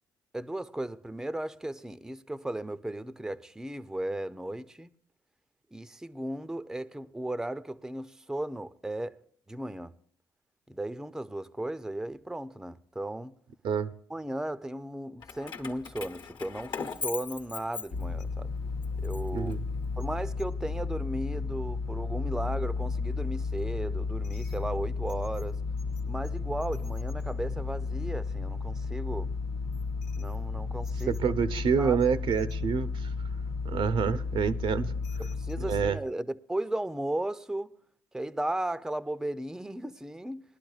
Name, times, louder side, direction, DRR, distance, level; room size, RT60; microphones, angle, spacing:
voice 1, 0.3-4.9 5.7-9.2 9.5-9.9 10.7-13.3 14.1-18.5 19.0-19.5 20.0-25.6 26.0-29.3 30.2-31.1 31.8-32.0 35.2-37.7 38.1-40.4, right 1 dB, 5° right, 0.5 m, -35 dB
Keys jangling, 15.2-18.4 18.8-20.1, left 5 dB, 55° left, 1.1 m, -39 dB
sound 1, 17.9-35.9, left 4 dB, 90° left, 0.9 m, -33 dB
voice 2, 19.3-19.6 31.1-33.1 33.6-34.9 35.7-36.0, right 6 dB, 65° right, 0.6 m, -27 dB
20.5 x 11.5 x 2.4 m
supercardioid pair, 55°, 9 cm